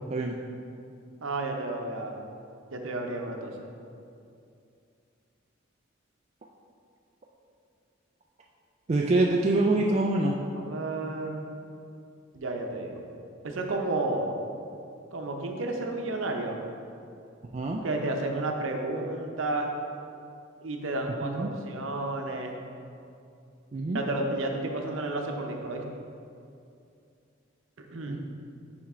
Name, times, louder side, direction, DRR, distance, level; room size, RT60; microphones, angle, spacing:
voice 1, 1.2-2.2 2.7-3.7 10.6-11.5 12.3-13.0 13.4-14.4 15.1-16.6 17.8-19.7 20.6-22.6 23.9-25.8 27.8-28.2, right 2 dB, 80° right, 2 dB, 0.7 m, -32 dB
voice 2, 8.9-10.4 17.5-17.8 21.2-21.5 23.7-24.0 28.1-28.2, right 2 dB, 35° right, -1 dB, 0.3 m, -25 dB
6.0 x 4.4 x 4.3 m, 2.5 s
head